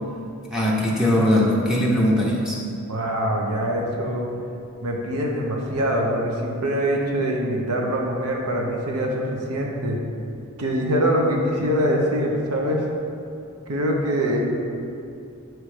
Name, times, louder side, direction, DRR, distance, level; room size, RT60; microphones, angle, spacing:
voice 1, 0.5-2.6, left 1 dB, 5° right, -5 dB, 0.7 m, -20 dB
voice 2, 2.9-4.2 4.8-10.0 10.6-12.8 13.7-14.5, equal, 85° right, 0 dB, 0.9 m, -23 dB
6.0 x 3.2 x 4.9 m, 2.6 s
head